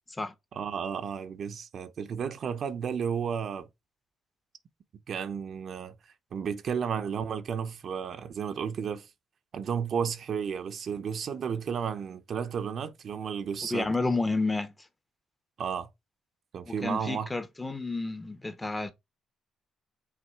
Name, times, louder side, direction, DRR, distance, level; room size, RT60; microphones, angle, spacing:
voice 1, 0.5-3.7 5.1-5.9 6.3-9.1 9.5-13.9 15.6-15.9 16.5-17.3, right 7 dB, 60° right, 0.9 m, -33 dB
voice 2, 13.7-14.7 16.7-18.9, left 3 dB, 15° left, 1.0 m, -30 dB
5.9 x 3.5 x 4.6 m
cardioid pair, 90°, 0 cm